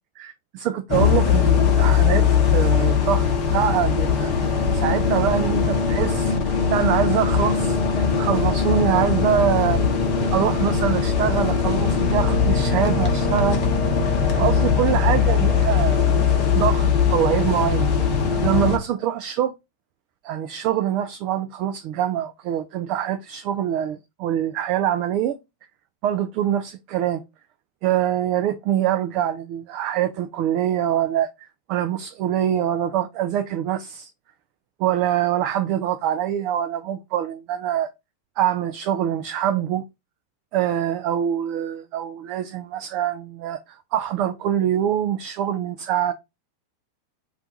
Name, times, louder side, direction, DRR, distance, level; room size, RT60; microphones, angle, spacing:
voice 1, 0.2-4.3 4.7-6.3 6.7-9.8 10.3-13.6 14.0-16.2 16.5-17.9 18.4-19.5 20.2-25.4 26.0-27.2 27.8-34.1 34.8-37.9 38.4-39.8 40.5-46.1, right 10 dB, 40° right, 0.3 m, -24 dB
sound 1, 0.9-18.8, left 6 dB, 40° left, 0.8 m, -20 dB
2.4 x 2.2 x 4.0 m
figure-of-eight pair, 90°, 0 cm